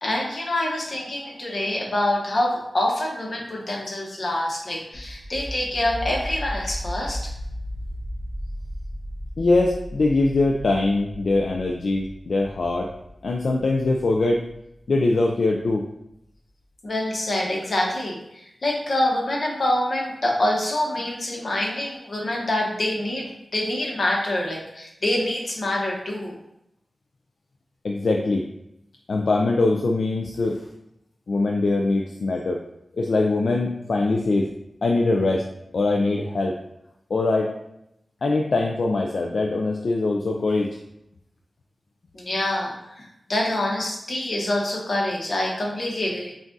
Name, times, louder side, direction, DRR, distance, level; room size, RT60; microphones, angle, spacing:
voice 1, 0.0-7.3 16.8-18.2 18.6-26.3 42.1-46.3, left 1 dB, 55° left, -2 dB, 1.0 m, -26 dB
sound 1, 4.9-15.6, equal, 40° left, 1.5 m, -36 dB
voice 2, 9.4-12.9 13.2-14.4 14.9-15.9 27.8-28.4 29.1-30.6 31.3-32.6 33.0-34.5 34.8-35.5 35.7-36.5 37.1-37.6 38.2-40.7, left 2 dB, 75° left, 1 dB, 0.3 m, -22 dB
5.8 x 2.4 x 2.6 m, 0.82 s
wide cardioid pair, 80°, 0 cm